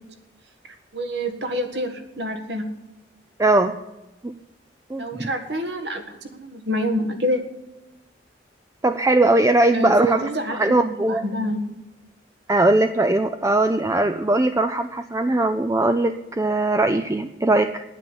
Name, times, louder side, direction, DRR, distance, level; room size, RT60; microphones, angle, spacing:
voice 1, 0.9-2.7 5.0-7.4 9.7-10.8 11.1-11.6, equal, 65° right, 6 dB, 1.8 m, -27 dB
voice 2, 3.4-3.8 4.2-4.3 4.9-5.3 8.8-11.2 12.5-17.8, right 2 dB, 15° right, 8 dB, 0.4 m, -20 dB
10.0 x 9.1 x 8.8 m, 0.98 s
head